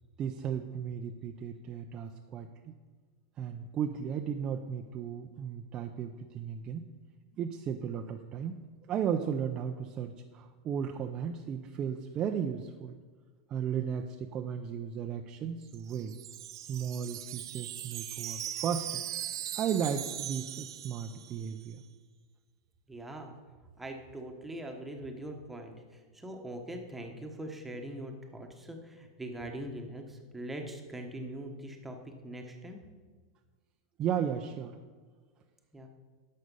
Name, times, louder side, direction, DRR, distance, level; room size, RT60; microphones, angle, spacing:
voice 1, 0.2-2.7 3.4-6.8 7.4-8.6 8.9-13.0 13.5-16.2 16.5-19.0 19.5-21.8 34.0-34.8, right 8 dB, 30° right, 4 dB, 0.5 m, -35 dB
Wind chime, 15.6-21.6, right 11 dB, 75° right, 0.6 m, -40 dB
voice 2, 22.9-23.3 23.8-25.7 26.1-32.0 32.2-32.8 35.7-35.9, right 1 dB, 5° right, 3 dB, 1.2 m, -42 dB
11.0 x 6.4 x 5.4 m, 1.4 s
hypercardioid pair, 130°, 2 cm